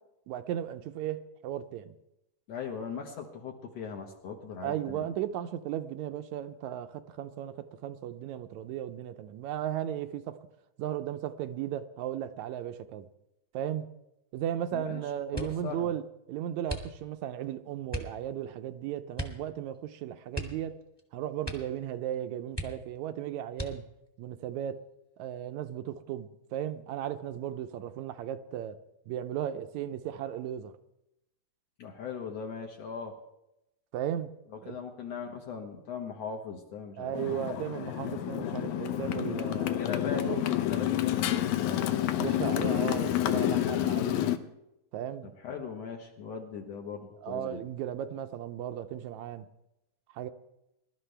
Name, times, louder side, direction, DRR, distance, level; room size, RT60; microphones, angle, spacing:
voice 1, 0.3-1.9 4.6-10.4 10.8-13.0 13.5-13.8 14.3-16.0 16.3-20.8 21.1-23.9 24.2-24.8 25.2-28.8 29.1-30.7 33.9-34.3 34.6-34.8 37.0-40.5 42.2-44.3 44.9-45.3 47.2-49.5 50.1-50.3, right 11 dB, 80° right, 9 dB, 1.9 m, -36 dB
voice 2, 2.5-5.1 14.7-15.0 15.3-15.9 31.8-33.1 34.5-37.5 39.8-41.9 45.4-47.6, left 6 dB, 60° left, 2 dB, 2.2 m, -39 dB
sound 1, 15.3-15.7 16.6-17.3 17.9-18.2 19.1-19.5 19.7-19.8 20.3-21.1 21.4-21.8 22.1-22.2 22.5-23.1 23.5-24.1 24.8-25.4 25.8-26.2, equal, 10° left, 1.2 m, -39 dB
Motorcycle, 37.1-44.4, left 12 dB, 75° left, 2.1 m, -29 dB
22.5 x 12.5 x 3.3 m, 0.87 s
omnidirectional pair, 3.5 m